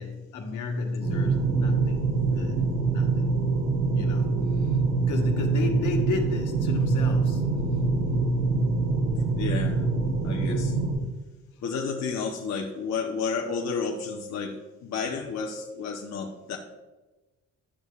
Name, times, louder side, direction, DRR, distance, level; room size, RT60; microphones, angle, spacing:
voice 1, 0.0-3.1 3.9-4.3 4.6-4.8 5.1-7.5, left 4 dB, 80° left, 2 dB, 1.4 m, -33 dB
sound 1, 1.0-10.9, right 4 dB, 85° right, 2.8 m, -25 dB
voice 2, 9.4-9.8 10.2-10.7 11.6-16.6, left 5 dB, 60° left, 0 dB, 0.9 m, -31 dB
11.5 x 6.4 x 2.4 m, 1.1 s
cardioid pair, 90°, 30 cm